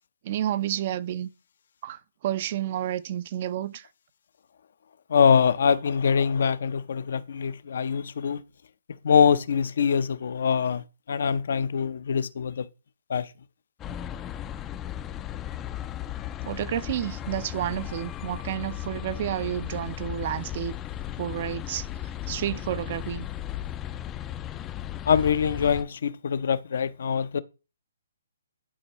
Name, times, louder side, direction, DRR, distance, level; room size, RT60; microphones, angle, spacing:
voice 1, 0.2-1.3 1.8-3.9 16.4-20.8 21.2-21.9 22.3-23.3, right 11 dB, 45° right, 0.5 m, -30 dB
voice 2, 5.1-8.4 9.0-12.7 13.1-13.3 25.0-27.4, left 7 dB, 65° left, 0.6 m, -24 dB
sound 1, 13.8-25.8, left 12 dB, 20° left, 0.4 m, -36 dB
11.0 x 4.4 x 3.0 m
hypercardioid pair, 145°, 0 cm